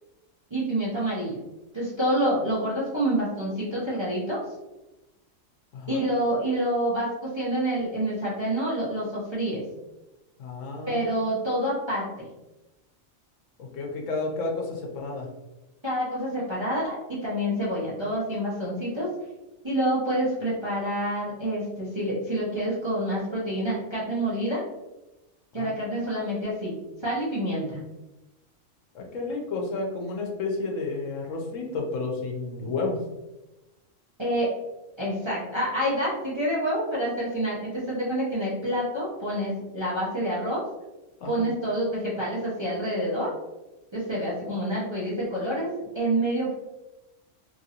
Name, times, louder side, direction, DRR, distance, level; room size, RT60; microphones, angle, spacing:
voice 1, 0.5-1.4 1.7-4.4 5.9-9.6 10.9-12.3 15.8-19.1 19.6-24.6 25.5-26.7 27.0-27.8 34.2-34.5 35.0-40.6 41.3-43.3 43.9-45.7 45.9-46.5, right 1 dB, 25° right, -8 dB, 0.6 m, -27 dB
voice 2, 5.7-6.0 10.4-11.0 13.6-15.3 25.6-25.7 28.9-33.0 41.2-41.4, left 3 dB, 75° left, 0 dB, 1.0 m, -31 dB
2.9 x 2.6 x 2.7 m, 1.0 s
omnidirectional pair, 1.4 m